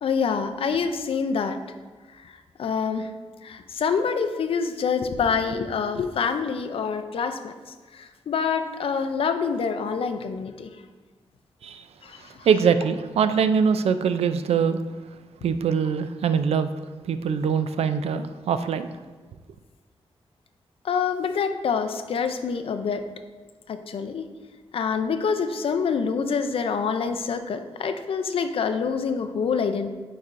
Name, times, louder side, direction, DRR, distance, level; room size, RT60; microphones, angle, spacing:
voice 1, 0.0-1.6 2.2-3.1 3.4-10.7 12.0-12.5 20.8-23.0 23.7-24.3 24.7-29.9, left 6 dB, 60° left, 8 dB, 0.4 m, -26 dB
voice 2, 12.4-14.8 15.4-16.7 17.1-18.9, right 6 dB, 75° right, 10 dB, 0.4 m, -23 dB
9.2 x 4.2 x 2.5 m, 1.4 s
wide cardioid pair, 170°, 11 cm